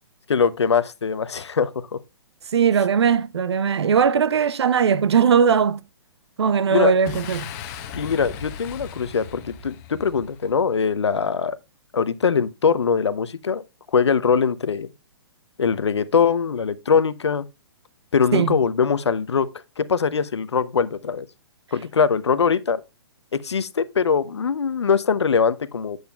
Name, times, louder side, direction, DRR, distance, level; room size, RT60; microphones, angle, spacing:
voice 1, 0.3-2.0 6.7-6.9 8.0-11.6 11.9-13.6 13.9-14.9 15.6-17.5 18.1-19.5 19.8-21.3 21.7-22.8 23.3-26.0, left 6 dB, 85° left, 0.6 m, -22 dB
voice 2, 2.5-5.8 6.4-7.5 18.3-18.5, right 7 dB, 75° right, 0.5 m, -19 dB
Boom, 7.1-10.7, left 6 dB, 35° left, 1.0 m, -37 dB
8.8 x 7.9 x 2.3 m
hypercardioid pair, 130°, 14 cm